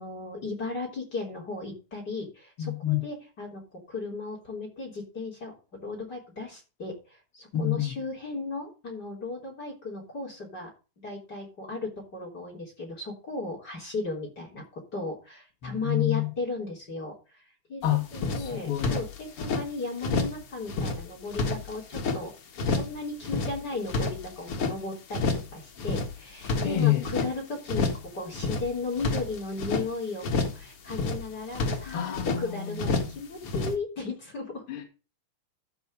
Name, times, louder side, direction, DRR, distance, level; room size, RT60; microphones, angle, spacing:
voice 1, 0.0-10.7 11.0-17.4 17.7-17.8 18.1-22.3 22.6-34.6, left 3 dB, 25° left, 3.4 m, -36 dB
voice 2, 2.6-3.0 7.5-7.9 15.6-16.3 17.8-18.0 18.4-19.0 26.6-27.0 31.9-33.1 34.7-34.8, left 12 dB, 40° left, 2.3 m, -27 dB
sound 1, 17.8-17.9 18.1-19.6 20.0-20.4 20.7-22.2 22.6-23.0 23.2-24.8 25.1-25.5 25.8-27.3 27.7-28.1 28.3-29.9 30.2-30.6 30.9-32.4 32.8-33.2 33.4-33.7, left 3 dB, 90° left, 1.2 m, -29 dB
14.0 x 5.3 x 5.1 m
omnidirectional pair, 5.2 m